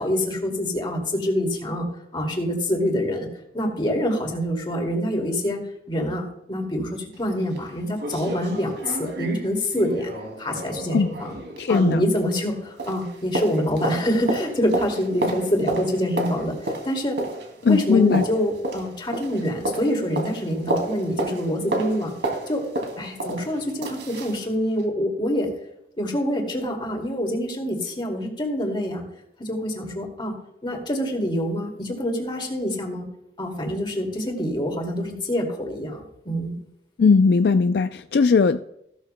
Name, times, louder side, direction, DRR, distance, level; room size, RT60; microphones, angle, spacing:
voice 1, 0.0-1.9 2.1-3.3 3.5-5.6 5.9-10.1 10.4-11.4 11.7-17.2 17.7-22.1 22.5-22.6 23.0-25.5 26.0-29.0 29.4-30.3 30.6-33.1 33.4-36.6, equal, 25° left, 2 dB, 2.3 m, -26 dB
sound 1, 7.1-7.2 7.6-7.7 8.0-12.5 12.8-24.4 24.8-24.9, right 1 dB, 85° right, 2.5 m, -31 dB
voice 2, 11.6-12.0 17.6-18.2 37.0-38.6, left 5 dB, 65° left, 10 dB, 0.4 m, -18 dB
16.0 x 12.5 x 2.2 m, 0.79 s
head